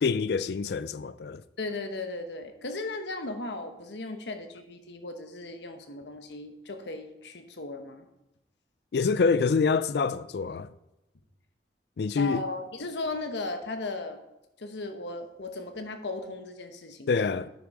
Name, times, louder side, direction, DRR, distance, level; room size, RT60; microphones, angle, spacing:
voice 1, 0.0-1.4 8.9-10.7 12.0-12.5 17.1-17.5, left 5 dB, 70° left, 0.4 m, -26 dB
voice 2, 1.6-8.1 12.2-14.2 14.6-17.4, left 2 dB, 85° left, 1.0 m, -36 dB
9.8 x 6.3 x 4.7 m
head